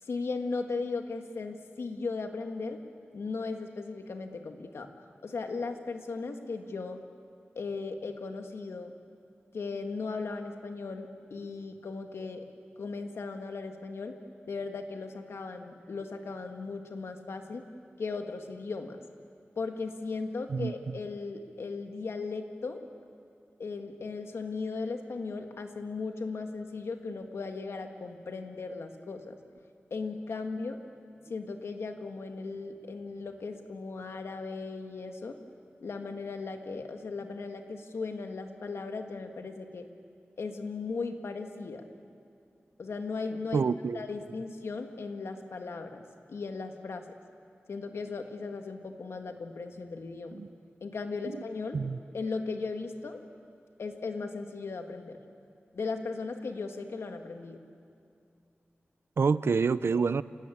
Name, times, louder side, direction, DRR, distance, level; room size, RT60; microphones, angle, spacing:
voice 1, 0.0-2.8 3.1-4.9 5.2-7.0 7.6-8.9 9.5-12.5 12.8-14.1 14.5-17.6 18.0-19.0 19.6-22.8 23.6-29.3 29.9-30.8 31.3-35.4 35.8-39.9 40.4-41.8 42.8-43.6 43.9-46.0 46.3-47.1 47.7-50.4 50.8-51.8 52.1-53.2 53.8-55.2 55.7-57.6, left 4 dB, 85° left, 5 dB, 1.9 m, -37 dB
voice 2, 20.5-20.9 43.5-44.0 50.3-50.5 51.2-51.4 51.7-52.0 59.2-60.2, right 5 dB, 70° right, 16 dB, 0.6 m, -27 dB
28.5 x 19.0 x 8.6 m, 2.4 s
wide cardioid pair, 115°, 4 cm